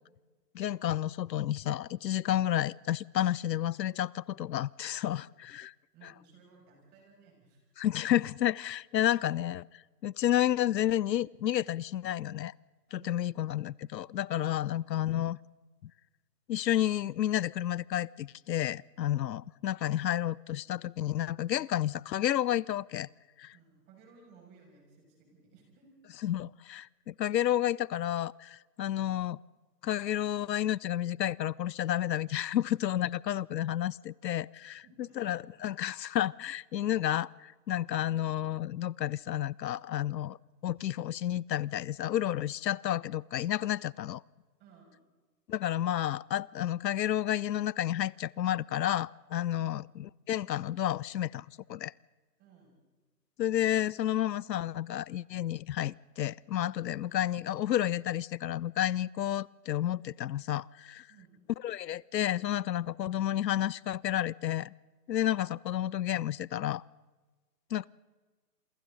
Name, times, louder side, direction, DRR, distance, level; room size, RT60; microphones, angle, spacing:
voice 1, 0.5-5.7 7.8-12.5 12.9-15.4 16.5-23.1 23.4-23.5 26.2-29.4 29.8-34.8 35.2-40.4 40.6-44.2 45.5-51.9 53.4-61.1 61.6-64.7 65.1-66.8 67.7-67.9, left 12 dB, 85° left, 0.6 m, -31 dB
voice 2, 5.9-7.6 12.9-13.3 14.3-14.7 23.5-25.9 34.8-35.5 44.6-45.0 49.5-49.8 52.4-52.7 61.1-61.3, right 5 dB, 20° right, 6.3 m, -59 dB
28.0 x 24.5 x 3.9 m
hypercardioid pair, 155°, 49 cm